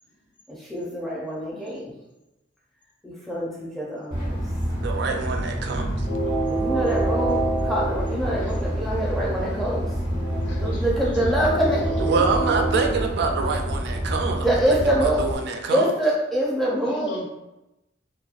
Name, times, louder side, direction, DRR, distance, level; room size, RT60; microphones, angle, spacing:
voice 1, 0.5-1.9 3.0-4.4 6.5-9.9 10.6-11.8 14.4-15.3 15.7-17.1, right 1 dB, ahead, -5 dB, 0.5 m, -25 dB
Train, 4.1-15.3, right 1 dB, 55° left, 1.1 m, -26 dB
voice 2, 4.7-6.0 12.0-14.5 15.0-15.8, right 4 dB, 60° right, 4 dB, 0.4 m, -25 dB
voice 3, 6.0-6.8 8.2-8.6 10.4-10.9 11.2-13.0 16.8-17.2, left 1 dB, 70° left, -3 dB, 0.8 m, -37 dB
2.9 x 2.3 x 2.4 m, 0.95 s
head